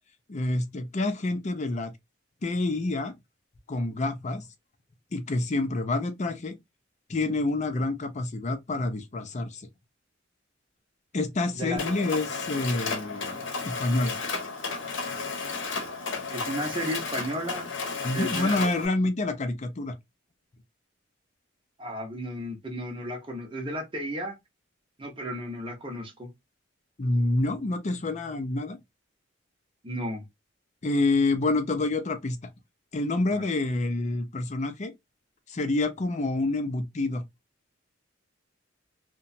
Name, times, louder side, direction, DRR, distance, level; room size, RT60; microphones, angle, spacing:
voice 1, 0.3-1.9 2.4-3.1 3.7-4.5 5.1-6.5 7.1-9.7 11.1-14.2 18.0-19.9 27.0-28.8 30.8-32.4 32.9-34.9 35.5-37.2, left 2 dB, 35° left, 0.5 m, -27 dB
Mechanisms, 11.8-18.9, left 4 dB, 75° left, 0.8 m, -33 dB
voice 2, 16.3-17.7 18.1-18.6 21.8-24.4 25.0-26.3 29.8-30.2 33.3-33.5, equal, 25° right, 0.7 m, -34 dB
2.8 x 2.2 x 2.6 m
head